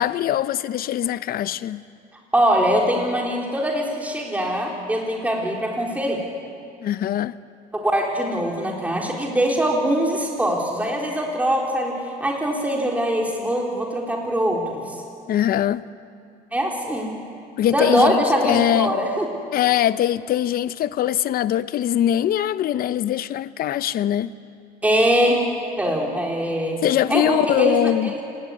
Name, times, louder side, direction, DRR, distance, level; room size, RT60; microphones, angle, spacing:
voice 1, 0.0-1.8 6.8-7.3 15.3-15.8 17.6-19.0 19.5-24.3 26.8-28.1, left 11 dB, 60° left, 0.8 m, -22 dB
voice 2, 2.3-6.2 7.7-11.9 12.2-14.8 16.5-17.2 17.6-19.3 24.8-25.4 25.8-26.8 27.1-28.2, equal, 10° right, 4.0 m, -22 dB
28.0 x 19.5 x 9.7 m
cardioid pair, 110°, 17 cm